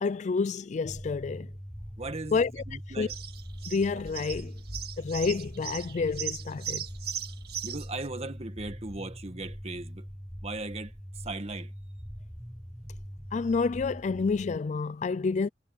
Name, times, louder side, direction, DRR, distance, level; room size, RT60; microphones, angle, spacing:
voice 1, 0.0-1.5 2.3-2.6 3.0-3.1 3.7-4.6 5.0-6.8 13.3-15.5, left 4 dB, 40° left, 0.4 m, -29 dB
sound 1, 0.8-14.6, equal, 5° right, 5.0 m, -42 dB
voice 2, 2.0-2.4 2.7-3.1 7.6-10.1 10.4-11.7, right 2 dB, 35° right, 1.7 m, -38 dB
sound 2, 3.1-8.1, right 9 dB, 65° right, 2.1 m, -38 dB
head